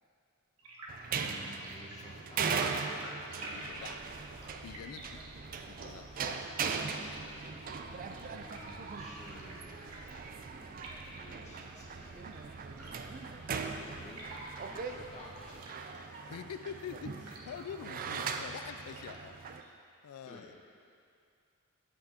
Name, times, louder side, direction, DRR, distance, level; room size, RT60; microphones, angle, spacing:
sound 1, 0.6-19.7, right 1 dB, 80° right, 1.2 m, -52 dB
sound 2, 0.9-19.6, right 5 dB, 40° right, 0.3 m, -39 dB
voice 1, 1.1-2.5 8.1-12.3 13.3-14.2 14.7-15.7 20.2-20.5, left 1 dB, 30° left, -5 dB, 1.2 m, -53 dB
voice 2, 3.5-4.1 4.4-5.2 5.6-6.1 16.2-19.6 20.0-20.5, left 8 dB, 70° left, 15 dB, 0.3 m, -46 dB
sound 3, 3.5-15.5, equal, 5° left, 0.7 m, -56 dB
8.7 x 7.9 x 2.8 m, 2.4 s
head